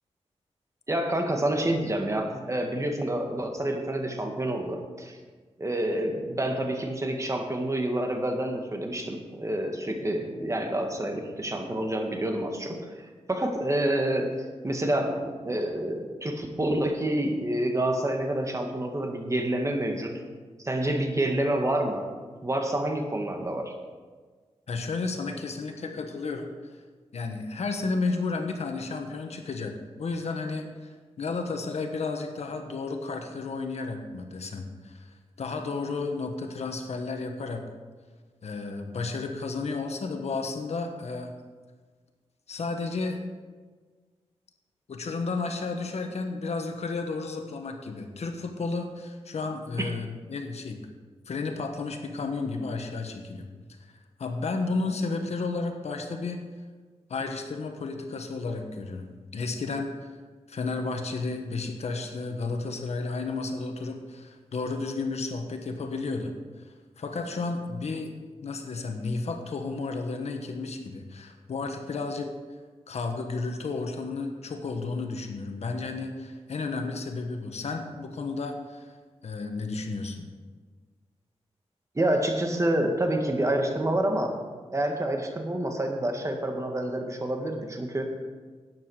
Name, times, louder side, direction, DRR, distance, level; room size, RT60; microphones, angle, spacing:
voice 1, 0.9-5.2 5.6-14.3 14.6-20.1 20.6-22.1 22.4-23.7 49.8-49.9 82.0-84.3 84.7-88.1, right 1 dB, 25° right, 3 dB, 1.8 m, -28 dB
voice 2, 24.7-26.5 27.1-30.9 31.2-35.1 35.4-37.6 38.4-41.3 42.5-43.2 44.9-50.9 51.3-53.5 54.2-56.4 57.1-60.1 60.5-66.3 67.0-68.1 68.4-72.3 72.9-78.9 79.2-80.3, left 3 dB, 75° left, 5 dB, 1.4 m, -32 dB
12.5 x 9.3 x 5.0 m, 1.4 s
wide cardioid pair, 80°, 11 cm